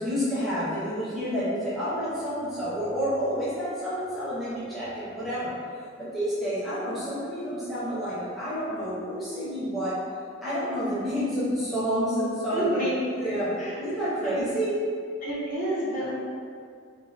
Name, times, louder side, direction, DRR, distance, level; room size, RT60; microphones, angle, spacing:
voice 1, 0.0-5.5 6.0-10.0 10.4-12.9 13.2-13.5 13.8-14.8, equal, ahead, -12 dB, 0.6 m, -29 dB
voice 2, 12.5-13.8 14.2-14.4 15.2-16.1, right 1 dB, 40° left, -9 dB, 0.7 m, -30 dB
2.5 x 2.4 x 2.4 m, 2.2 s
head